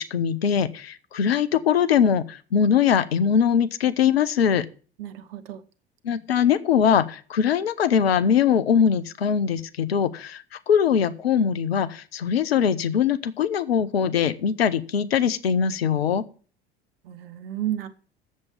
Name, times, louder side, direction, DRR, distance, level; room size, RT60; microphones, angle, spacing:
voice 1, 0.0-4.7 6.0-16.2, left 7 dB, 80° left, 14 dB, 0.8 m, -22 dB
voice 2, 5.0-5.6 17.0-17.9, right 12 dB, 65° right, 10 dB, 1.2 m, -32 dB
7.6 x 7.2 x 8.0 m, 0.40 s
figure-of-eight pair, 65°, 30 cm